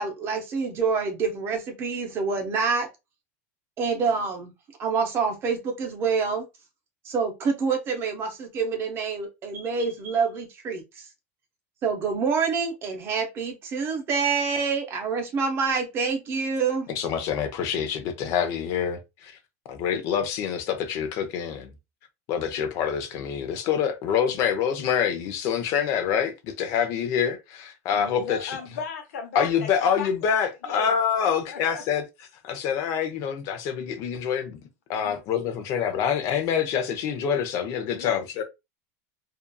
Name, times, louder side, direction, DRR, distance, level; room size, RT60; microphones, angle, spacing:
voice 1, 0.0-2.9 3.8-4.5 4.8-6.4 7.0-11.1 11.8-16.9, right 5 dB, 30° right, 0.6 m, -27 dB
voice 2, 16.9-19.4 19.7-21.7 22.3-28.6 29.3-32.0 32.4-34.6 34.9-38.4, left 8 dB, 45° left, 0.6 m, -26 dB
voice 3, 27.9-30.3 30.6-30.9 31.5-31.8 35.0-35.2 37.9-38.2, left 6 dB, 80° left, 0.9 m, -36 dB
2.7 x 2.4 x 2.2 m
supercardioid pair, 155°, 8 cm